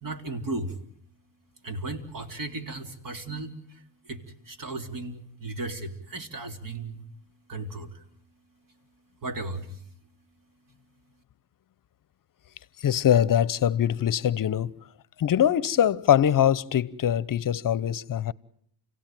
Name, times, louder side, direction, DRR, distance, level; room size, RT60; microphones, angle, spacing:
voice 1, 0.0-0.7 1.6-7.0 7.5-8.0 9.2-9.8, right 2 dB, 45° right, 3.7 m, -35 dB
voice 2, 12.8-14.7 15.2-18.3, left 10 dB, 45° left, 1.0 m, -23 dB
29.5 x 17.5 x 9.2 m
supercardioid pair, 70°, 46 cm